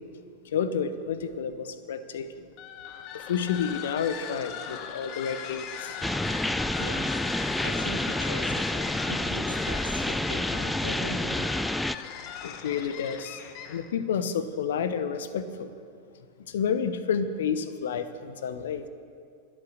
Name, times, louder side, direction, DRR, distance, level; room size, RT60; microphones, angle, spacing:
voice 1, 0.4-2.3 3.1-6.0 9.5-9.6 12.4-13.4 13.7-15.7 16.5-18.9, left 7 dB, 60° left, 12 dB, 1.0 m, -30 dB
sound 1, 2.5-13.9, left 8 dB, 40° left, 1.2 m, -39 dB
sound 2, 6.0-12.0, left 1 dB, 5° left, 0.4 m, -29 dB
voice 2, 7.4-11.4, equal, 85° left, 3 dB, 1.9 m, -39 dB
23.0 x 8.9 x 6.5 m, 2.3 s
figure-of-eight pair, 90°, 0 cm